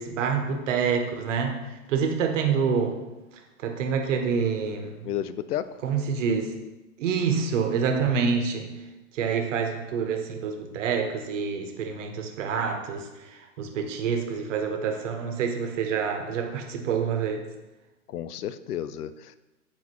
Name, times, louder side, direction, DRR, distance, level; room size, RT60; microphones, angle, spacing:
voice 1, 0.0-1.6 1.9-3.0 3.6-5.0 5.8-6.5 7.0-8.7 9.1-13.1 13.6-17.4, right 6 dB, 50° right, 4 dB, 1.1 m, -27 dB
voice 2, 5.0-5.7 18.1-19.4, left 11 dB, 75° left, 14 dB, 0.5 m, -32 dB
8.0 x 4.3 x 2.9 m, 1.1 s
hypercardioid pair, 115°, 46 cm